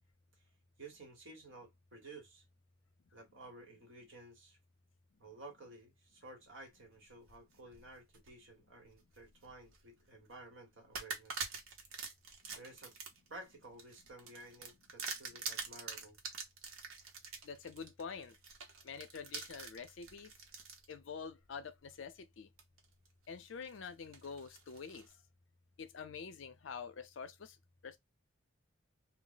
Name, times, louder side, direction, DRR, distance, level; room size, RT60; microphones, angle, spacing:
voice 1, 0.8-2.4 3.1-4.6 5.2-11.5 12.5-12.9 13.3-16.2, right 2 dB, 65° right, 1.2 m, -54 dB
sound 1, 7.1-8.3 8.9-9.8 10.3-10.4 10.9-20.9 21.5-21.6 22.6-23.1 23.5-25.1, right 5 dB, 90° right, 0.8 m, -46 dB
voice 2, 17.4-18.3 18.8-20.3 20.9-22.5 23.3-25.1 25.8-27.6 27.8-28.0, left 5 dB, 65° left, 0.5 m, -47 dB
2.3 x 2.1 x 3.8 m
head